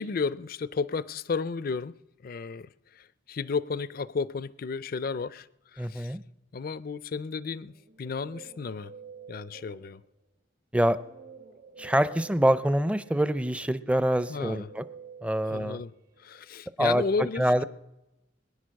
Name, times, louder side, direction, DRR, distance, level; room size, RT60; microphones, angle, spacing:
voice 1, 0.0-2.0 2.2-6.2 6.5-8.9 9.3-10.0 14.3-14.7 15.4-15.9 16.2-17.5, left 4 dB, 50° left, 0.5 m, -33 dB
voice 2, 5.8-6.2 10.7-11.0 11.8-14.8 15.2-15.8 16.8-17.0 17.4-17.6, right 1 dB, 5° right, 0.5 m, -25 dB
Guitar, 7.7-10.2 11.0-16.4, right 6 dB, 50° right, 1.0 m, -49 dB
22.0 x 10.0 x 6.4 m
head